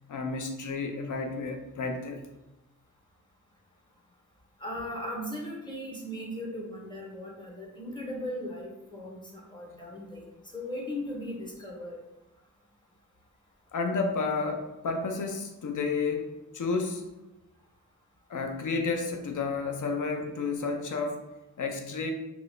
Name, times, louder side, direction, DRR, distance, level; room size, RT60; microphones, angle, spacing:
voice 1, 0.1-2.2 13.7-17.1 18.3-21.2 21.6-22.1, left 4 dB, 65° left, 4 dB, 0.5 m, -31 dB
voice 2, 4.6-10.3 10.5-12.0, left 1 dB, 15° left, -2 dB, 0.7 m, -38 dB
2.8 x 2.3 x 3.1 m, 0.98 s
wide cardioid pair, 100°, 33 cm